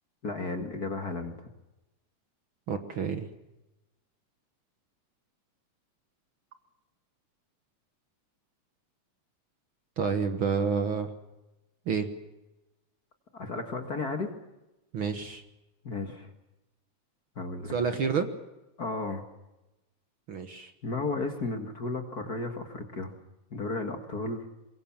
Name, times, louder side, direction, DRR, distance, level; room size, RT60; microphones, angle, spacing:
voice 1, 0.2-1.5 13.3-14.3 15.8-16.3 17.4-17.7 18.8-19.2 20.8-23.1 23.5-24.4, left 3 dB, 35° left, 5 dB, 2.0 m, -33 dB
voice 2, 2.7-3.3 10.0-11.1 11.9-12.1 14.9-15.4 17.7-18.3 20.3-20.7, right 6 dB, 50° right, 8 dB, 1.9 m, -29 dB
23.5 x 23.0 x 7.3 m, 1.0 s
omnidirectional pair, 3.3 m